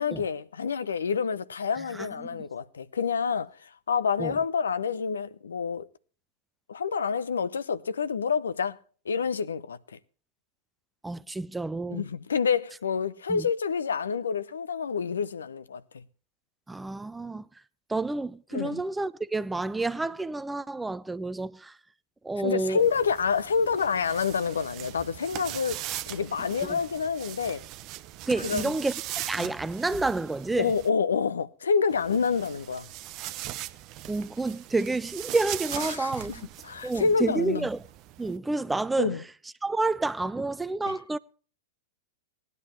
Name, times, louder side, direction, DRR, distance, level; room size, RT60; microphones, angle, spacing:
voice 1, 0.0-3.5 3.9-5.9 6.7-8.8 9.1-9.8 11.9-16.0 18.5-18.8 22.4-27.7 28.4-28.7 29.4-29.5 30.6-32.9 35.8-36.4 36.6-37.7 39.0-39.2, left 6 dB, 75° left, 0.7 m, -28 dB
voice 2, 1.9-2.4 4.2-4.3 11.0-12.1 13.3-13.5 16.7-17.4 17.9-21.8 22.2-22.8 26.7-26.8 28.3-28.9 29.3-30.7 34.1-36.5 36.8-37.8 38.2-39.2 39.6-41.2, right 2 dB, 10° right, 0.5 m, -29 dB
sound 1, 22.8-30.9 31.9-38.4, right 14 dB, 40° right, 0.8 m, -40 dB
18.5 x 11.0 x 3.1 m
figure-of-eight pair, 95°, 0 cm